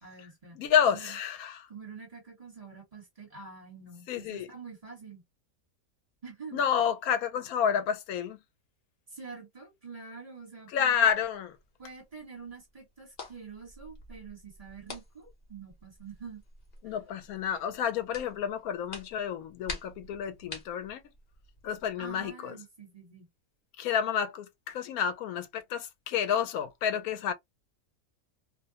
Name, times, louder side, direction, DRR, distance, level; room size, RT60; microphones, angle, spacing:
voice 1, 0.0-0.6 0.9-1.2 1.7-5.2 6.2-6.6 9.1-11.1 11.8-16.4 16.8-17.0 22.0-23.3, right 5 dB, 25° right, 1.3 m, -46 dB
voice 2, 0.6-1.7 4.1-4.5 6.5-8.4 10.7-11.5 16.8-21.0 21.6-22.6 23.8-27.3, left 8 dB, 85° left, 1.1 m, -29 dB
sound 1, 11.0-22.3, left 3 dB, 40° left, 1.0 m, -48 dB
2.6 x 2.1 x 2.7 m
omnidirectional pair, 1.5 m